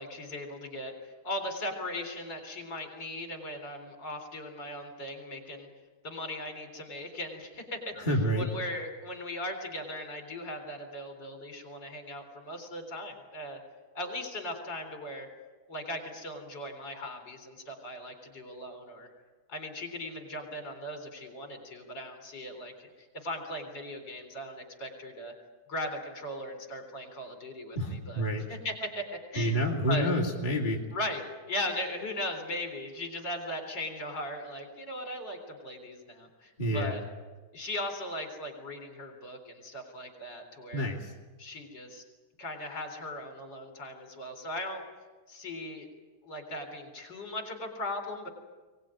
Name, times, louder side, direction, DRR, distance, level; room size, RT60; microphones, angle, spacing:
voice 1, 0.0-5.7 6.0-7.9 8.4-13.6 13.9-15.3 15.7-19.1 19.5-25.3 25.7-28.2 28.5-29.6 29.9-30.1 30.9-37.0 37.5-40.9 41.4-42.0 42.4-44.8 45.3-45.9 46.2-48.3, left 1 dB, 55° left, 5 dB, 4.4 m, -38 dB
voice 2, 8.0-8.5 27.7-28.4 29.4-30.8 36.6-37.0 40.7-41.1, equal, 20° left, -2 dB, 2.9 m, -28 dB
23.0 x 19.5 x 9.0 m, 1.3 s
omnidirectional pair, 2.4 m